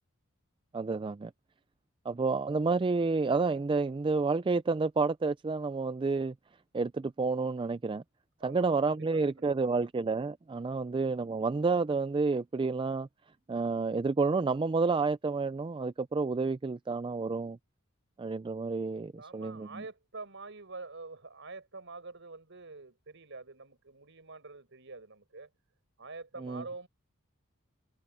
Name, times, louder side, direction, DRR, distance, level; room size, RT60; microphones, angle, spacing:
voice 1, 0.7-1.3 2.1-6.3 6.7-8.0 8.4-13.1 13.5-17.6 18.2-19.8 26.4-26.6, right 4 dB, 25° right, 0.3 m, -30 dB
voice 2, 8.4-9.8 19.1-25.5 26.0-26.9, right 3 dB, 60° right, 5.0 m, -46 dB
head